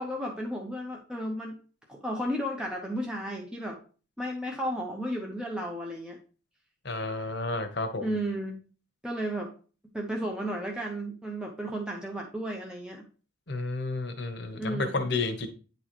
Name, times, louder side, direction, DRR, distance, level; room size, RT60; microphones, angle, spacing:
voice 1, 0.0-1.6 1.9-3.8 4.2-6.2 8.0-8.6 9.0-9.5 9.9-13.0 14.5-15.0, equal, 5° right, 0 dB, 0.6 m, -33 dB
voice 2, 6.8-8.1 13.5-15.5, left 3 dB, 55° left, 6 dB, 1.0 m, -31 dB
9.2 x 4.0 x 3.0 m, 0.38 s
head